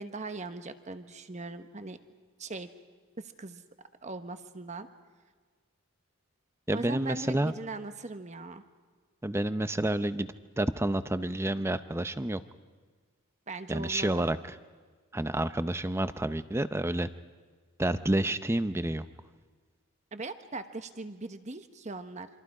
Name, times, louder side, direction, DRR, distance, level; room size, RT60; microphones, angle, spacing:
voice 1, 0.0-2.0 2.4-2.7 3.2-3.6 4.0-4.9 6.7-8.6 13.5-14.2 20.1-22.3, right 3 dB, 35° right, 9 dB, 1.1 m, -40 dB
voice 2, 6.7-7.5 9.2-10.3 10.6-12.4 13.7-14.4 15.1-17.1 17.8-19.0, right 1 dB, 10° right, 12 dB, 0.6 m, -29 dB
27.5 x 26.0 x 4.9 m, 1.5 s
head